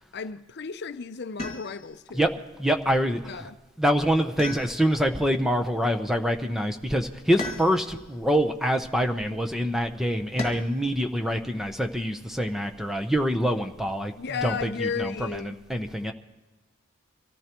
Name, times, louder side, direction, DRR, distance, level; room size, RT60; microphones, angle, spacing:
voice 1, 0.1-2.3 3.3-3.6 14.2-15.5, left 5 dB, 55° left, 0.6 m, -34 dB
sound 1, 1.4-2.0 4.4-5.2 7.4-8.1 10.4-10.9 12.6-13.2, left 2 dB, 30° left, 2.2 m, -37 dB
voice 2, 2.6-3.5 3.8-14.1 14.4-16.1, equal, ahead, 0.7 m, -25 dB
25.0 x 14.5 x 3.0 m
head